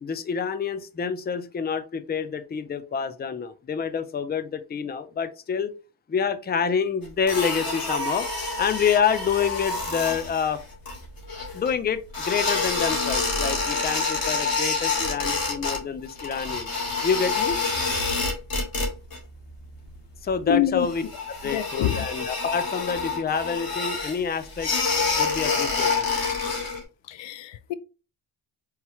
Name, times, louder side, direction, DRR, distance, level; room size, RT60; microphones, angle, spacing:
voice 1, 0.0-5.7 6.1-8.3 8.6-10.6 11.5-16.7 17.0-17.6 20.2-21.0 21.3-24.7 25.2-26.1, left 6 dB, 20° left, 0.5 m, -27 dB
sound 1, 7.3-11.7 12.1-15.8 16.0-19.2 19.5-19.9 20.3-20.4 20.8-26.8, left 4 dB, 45° left, 2.2 m, -27 dB
voice 2, 20.5-20.9 21.4-22.1 27.1-27.7, left 11 dB, 65° left, 0.6 m, -26 dB
4.5 x 3.2 x 3.0 m
cardioid pair, 80°, 47 cm